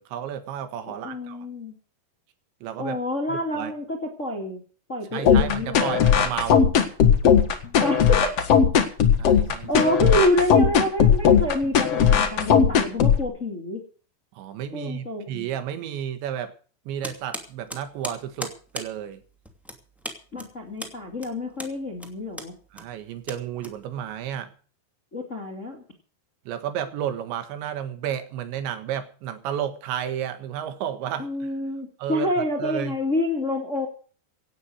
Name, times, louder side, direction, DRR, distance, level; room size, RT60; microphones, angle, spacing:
voice 1, 0.0-1.4 2.6-3.0 3.3-3.7 5.1-6.7 9.2-9.9 14.4-16.5 16.9-19.2 22.7-24.5 26.5-31.5 32.0-32.3 32.6-33.0, right 10 dB, 90° right, 9 dB, 3.9 m, -32 dB
voice 2, 0.9-1.7 2.8-4.6 4.9-6.0 7.8-8.3 9.7-13.8 14.7-15.5 20.3-22.6 25.1-25.8 31.2-33.9, left 1 dB, 25° left, 2 dB, 1.9 m, -27 dB
sound 1, 5.3-13.2, left 7 dB, 55° left, 1.7 m, -18 dB
sound 2, 17.0-24.2, equal, ahead, 0.8 m, -39 dB
17.5 x 9.2 x 6.4 m, 0.40 s
omnidirectional pair, 5.0 m